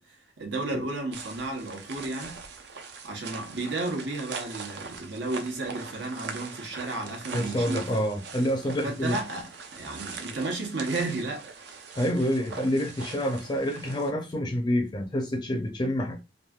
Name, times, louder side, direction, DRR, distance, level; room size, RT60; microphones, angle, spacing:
voice 1, 0.0-2.4 3.0-8.0 8.8-11.5, right 2 dB, 85° right, 1.0 m, -33 dB
sound 1, 1.1-14.1, right 5 dB, 70° right, 0.5 m, -41 dB
voice 2, 7.3-9.1 12.0-16.2, equal, 25° left, 0.4 m, -27 dB
3.1 x 2.5 x 2.3 m
head